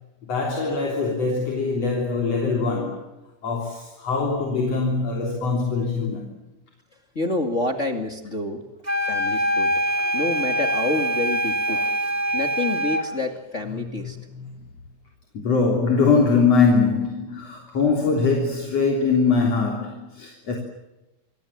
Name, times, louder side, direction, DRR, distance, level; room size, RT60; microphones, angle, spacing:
voice 1, 0.2-3.1 3.4-6.4 9.9-10.2 11.7-12.0 12.9-13.1 13.7-14.5 15.3-20.6, left 4 dB, 55° left, 4.6 m, -23 dB
voice 2, 7.2-8.6 9.0-9.9 10.1-11.8 12.3-14.2, left 2 dB, 25° left, 2.4 m, -28 dB
sound 1, 8.8-13.1, right 1 dB, 15° right, 2.0 m, -24 dB
28.0 x 23.5 x 7.4 m
omnidirectional pair, 3.5 m